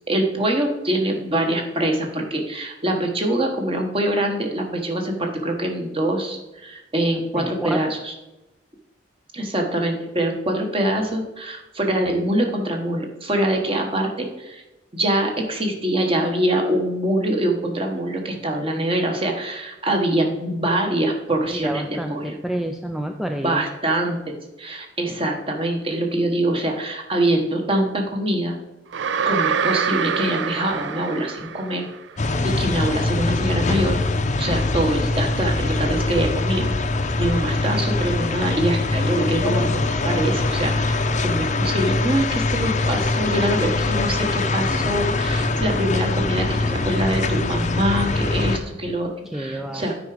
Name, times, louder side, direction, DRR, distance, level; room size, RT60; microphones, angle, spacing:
voice 1, 0.1-8.1 9.3-14.6 14.9-22.4 23.4-28.5 29.2-31.9 32.4-34.0 34.4-36.6 37.2-49.9, right 1 dB, 30° right, 3 dB, 1.3 m, -24 dB
voice 2, 7.3-7.8 21.5-23.6 49.3-49.9, right 1 dB, ahead, 4 dB, 0.4 m, -29 dB
sound 1, 28.9-32.0, right 7 dB, 75° right, 0.4 m, -25 dB
sound 2, 32.2-48.6, left 2 dB, 40° left, 0.7 m, -23 dB
9.3 x 4.8 x 4.9 m, 1.0 s
head